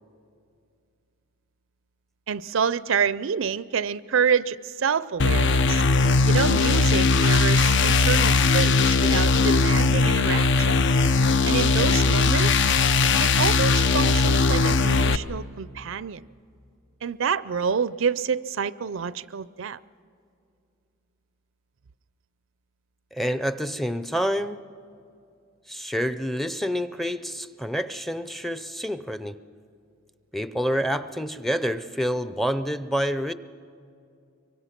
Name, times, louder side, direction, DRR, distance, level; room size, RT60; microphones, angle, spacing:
voice 1, 2.3-5.8 6.3-10.8 11.5-12.7 13.2-16.2 17.0-19.8, right 6 dB, 70° right, 18 dB, 0.5 m, -27 dB
sound 1, 5.2-15.2, left 4 dB, 60° left, 0.6 m, -19 dB
voice 2, 23.1-24.6 25.7-29.4 30.3-33.3, equal, ahead, 12 dB, 0.5 m, -28 dB
25.5 x 23.5 x 5.9 m, 2.5 s
head